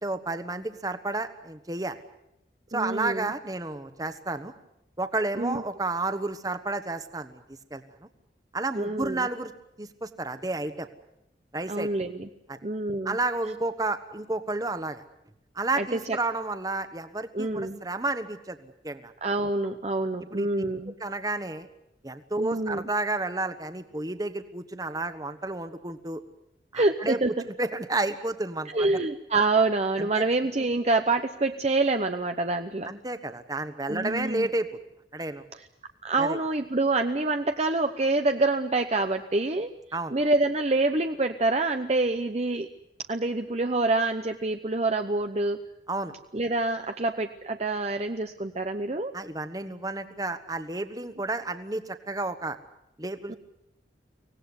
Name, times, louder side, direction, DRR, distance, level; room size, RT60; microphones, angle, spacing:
voice 1, 0.0-2.0 2.7-4.5 5.0-7.4 7.7-7.8 8.5-9.5 9.8-10.9 11.5-11.9 12.5-12.6 13.0-15.0 15.5-19.1 20.3-20.5 20.9-21.7 22.0-26.2 26.7-27.2 27.6-28.9 30.0-30.2 32.9-34.7 35.1-35.4 36.2-36.4 39.9-40.2 45.9-46.1 49.1-52.6 53.0-53.4, right 2 dB, 20° right, 10 dB, 1.4 m, -31 dB
voice 2, 2.7-3.3 5.4-5.6 8.7-9.3 11.7-12.3 12.6-13.2 15.8-16.2 17.3-17.8 19.2-20.9 22.4-22.9 26.7-27.4 28.7-32.9 33.9-34.5 36.0-39.7 40.1-42.7 43.1-45.6 46.3-49.1 53.3-53.4, right 2 dB, 35° right, 7 dB, 0.8 m, -26 dB
24.5 x 18.0 x 9.8 m, 0.83 s
head